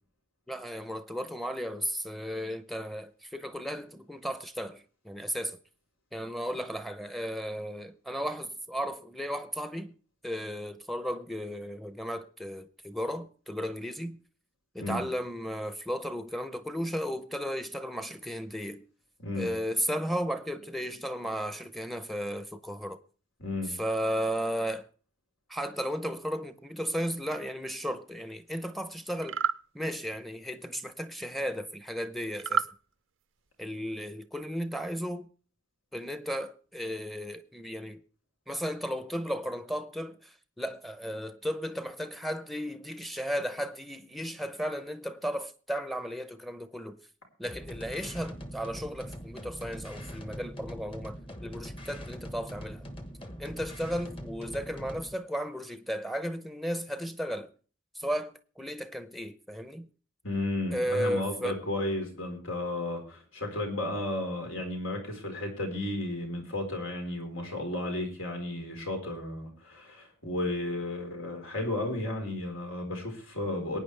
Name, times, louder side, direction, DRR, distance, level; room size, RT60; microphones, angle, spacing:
voice 1, 0.5-5.6 6.1-9.9 10.2-14.2 14.7-18.8 19.3-23.0 23.6-24.9 25.5-29.4 29.7-32.7 33.6-35.3 35.9-38.0 38.5-47.0 47.4-52.8 53.4-57.5 57.9-59.9 60.7-61.6, equal, ahead, 0.7 m, -34 dB
voice 2, 23.4-23.8 60.2-73.8, left 1 dB, 85° left, 4.1 m, -33 dB
sound 1, 29.2-29.6 32.4-32.7, right 6 dB, 80° right, 0.5 m, -28 dB
sound 2, 47.4-55.1, equal, 25° left, 1.1 m, -42 dB
22.5 x 9.4 x 3.3 m
head